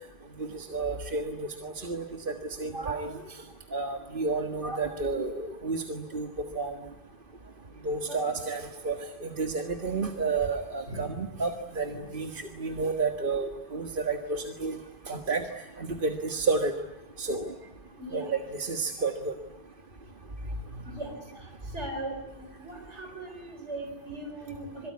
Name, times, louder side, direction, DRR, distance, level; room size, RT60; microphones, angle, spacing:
voice 1, 0.4-3.4 3.7-6.8 7.8-14.8 15.1-15.4 15.8-16.7 17.2-17.5 18.1-19.3, right 3 dB, 50° right, 5 dB, 1.8 m, -31 dB
voice 2, 10.9-11.2 18.0-18.3 20.8-24.9, right 2 dB, 80° right, 3 dB, 4.7 m, -39 dB
27.0 x 23.0 x 9.6 m, 0.95 s
omnidirectional pair, 1.1 m